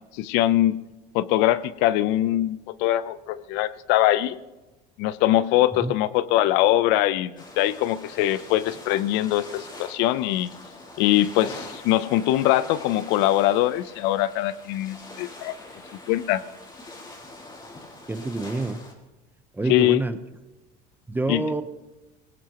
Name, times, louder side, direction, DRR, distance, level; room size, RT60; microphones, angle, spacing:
voice 1, 0.1-0.8 1.1-4.4 5.0-10.5 11.0-15.5 16.1-16.4 19.7-20.0 21.3-21.4, left 14 dB, 80° left, 16 dB, 0.7 m, -22 dB
sound 1, 7.4-18.9, left 2 dB, 25° left, 3.4 m, -43 dB
voice 2, 18.1-18.8 19.5-20.2 21.1-21.6, right 2 dB, 10° right, 10 dB, 0.8 m, -27 dB
22.5 x 17.5 x 3.0 m, 1.1 s
cardioid pair, 120°, 18 cm